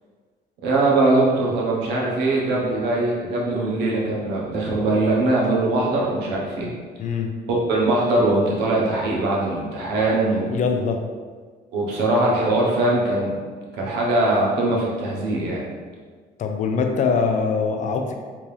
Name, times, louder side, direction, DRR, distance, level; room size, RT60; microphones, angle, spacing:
voice 1, 0.6-6.7 7.5-10.5 11.7-13.4 13.8-15.6, right 2 dB, 85° right, -3 dB, 0.9 m, -21 dB
voice 2, 10.5-11.0 16.4-18.1, left 5 dB, 45° left, 4 dB, 0.4 m, -22 dB
3.4 x 2.7 x 3.2 m, 1.5 s
cardioid pair, 110°, 17 cm